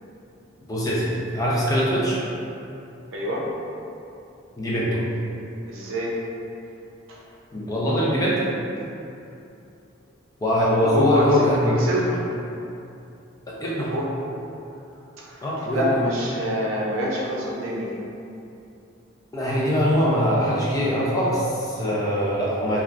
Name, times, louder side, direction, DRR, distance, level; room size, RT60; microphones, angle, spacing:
voice 1, 0.7-2.2 4.6-5.0 7.5-8.4 10.4-11.8 13.5-13.9 15.4-16.0 19.3-22.8, equal, 20° left, -7 dB, 0.5 m, -22 dB
voice 2, 3.1-3.5 5.7-6.2 7.1-7.2 10.5-12.3 13.8-14.1 15.2-18.0, equal, 85° right, -4 dB, 0.6 m, -26 dB
3.2 x 2.3 x 2.5 m, 2.7 s
head